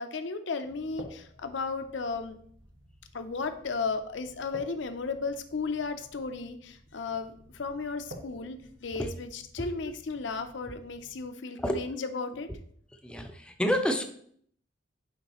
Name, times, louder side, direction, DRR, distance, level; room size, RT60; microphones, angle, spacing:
voice 1, 0.0-2.4 3.1-12.5, left 4 dB, 65° left, 8 dB, 0.6 m, -34 dB
sound 1, 0.6-11.3, right 1 dB, 80° right, 1.3 m, -52 dB
voice 2, 13.0-14.1, equal, 5° left, 5 dB, 0.5 m, -29 dB
9.4 x 3.8 x 3.0 m, 0.62 s
head